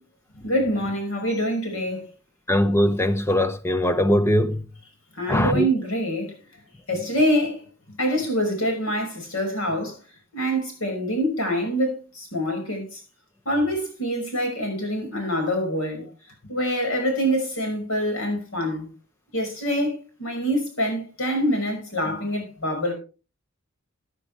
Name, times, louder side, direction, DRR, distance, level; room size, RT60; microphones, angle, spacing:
voice 1, 0.4-2.1 5.1-6.4 6.9-7.6 8.0-9.9 10.3-13.0 13.5-16.1 16.5-18.9 19.3-22.9, equal, 75° left, 5.9 m, -25 dB
voice 2, 2.5-4.6 5.3-5.7, left 1 dB, 10° left, 0.8 m, -21 dB
15.0 x 9.8 x 3.4 m
head